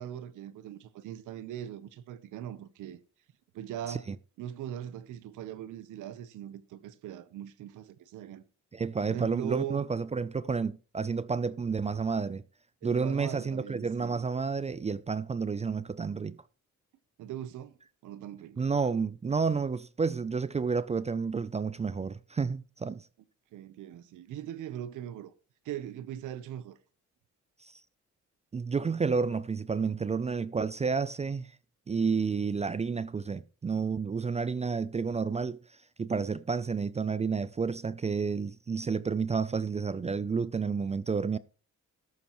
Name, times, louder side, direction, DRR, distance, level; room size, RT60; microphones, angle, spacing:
voice 1, 0.0-3.0 3.5-4.1 4.4-8.4 9.1-9.8 12.8-14.2 17.2-17.8 18.0-18.6 23.5-25.3 25.6-26.8, right 11 dB, 85° right, 1.0 m, -40 dB
voice 2, 8.7-12.4 12.8-16.4 18.6-23.1 27.7-27.8 28.5-31.5 31.9-35.6 36.0-41.4, right 5 dB, 20° right, 0.4 m, -30 dB
14.0 x 11.5 x 3.1 m
cardioid pair, 90°, 30 cm